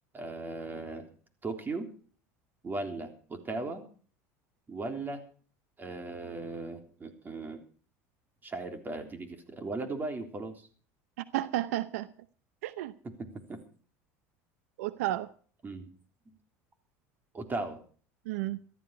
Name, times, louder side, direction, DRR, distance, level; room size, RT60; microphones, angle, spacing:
voice 1, 0.1-1.1 1.4-1.9 2.6-3.9 4.7-5.2 5.8-7.6 8.4-10.7 13.0-13.6 15.6-15.9 16.3-16.4 17.3-17.8, right 3 dB, 25° right, 6 dB, 3.5 m, -37 dB
voice 2, 11.2-12.1 12.6-12.9 14.8-15.3 18.3-18.6, right 15 dB, 80° right, 15 dB, 0.7 m, -32 dB
14.5 x 13.5 x 4.7 m, 0.43 s
supercardioid pair, 95°, 8 cm